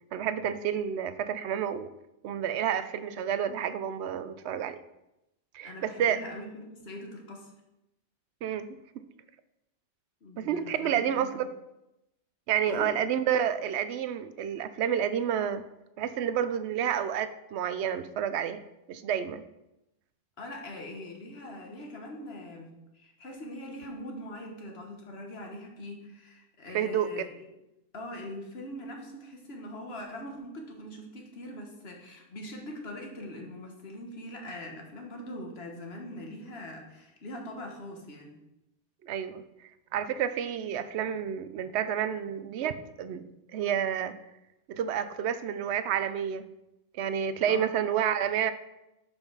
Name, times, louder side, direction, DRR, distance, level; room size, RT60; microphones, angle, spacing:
voice 1, 0.1-1.9 2.2-4.8 5.5-6.2 8.4-8.8 10.4-11.5 12.5-15.6 16.0-18.6 18.9-19.4 26.7-27.2 39.0-39.4 39.9-43.2 43.5-44.1 44.7-46.4 46.9-48.5, right 9 dB, 90° right, 13 dB, 0.8 m, -29 dB
voice 2, 5.6-7.5 10.2-11.4 12.7-12.9 20.4-27.5 27.9-38.4 47.5-47.7, left 1 dB, 70° left, 2 dB, 1.5 m, -42 dB
5.3 x 5.3 x 6.0 m, 0.89 s
omnidirectional pair, 1.1 m